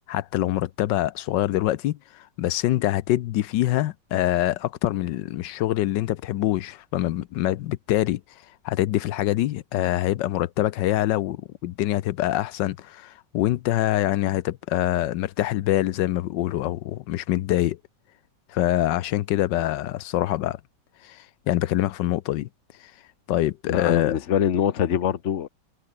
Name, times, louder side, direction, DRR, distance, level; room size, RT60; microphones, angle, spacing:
voice 1, 0.1-8.2 8.6-17.8 18.5-20.6 21.0-22.5 22.8-22.9 23.3-24.1, left 14 dB, 85° left, 1.4 m, -25 dB
voice 2, 23.7-25.5, left 9 dB, 45° left, 1.2 m, -24 dB
omnidirectional pair, 1.9 m